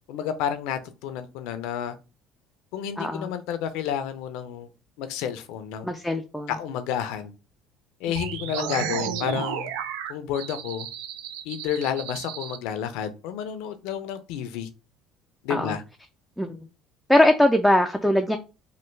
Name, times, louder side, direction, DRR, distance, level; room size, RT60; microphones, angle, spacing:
voice 1, 0.1-2.0 2.7-4.7 5.0-5.9 6.5-7.3 8.0-9.7 10.1-10.9 11.4-14.7 15.4-15.8, left 9 dB, 80° left, 0.5 m, -30 dB
voice 2, 3.0-3.3 5.8-6.5 15.5-15.8 16.4-16.6 17.1-18.4, left 1 dB, ahead, 0.3 m, -21 dB
sound 1, 8.1-12.6, right 8 dB, 85° right, 0.3 m, -33 dB
3.2 x 2.2 x 3.2 m
supercardioid pair, 100°, 0 cm